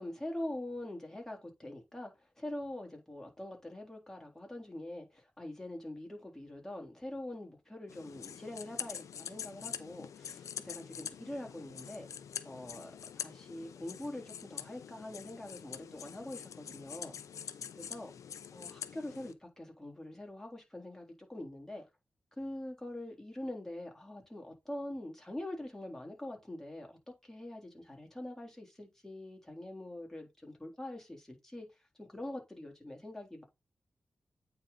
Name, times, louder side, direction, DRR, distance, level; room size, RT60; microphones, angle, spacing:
voice 1, 0.0-12.1 12.5-12.9 13.2-17.2 17.8-18.1 18.5-21.8 22.4-31.7 32.0-33.4, left 1 dB, 10° left, 3.4 m, -44 dB
sound 1, 7.9-19.3, left 8 dB, 80° left, 0.6 m, -45 dB
8.7 x 4.0 x 4.0 m
supercardioid pair, 40°, 5 cm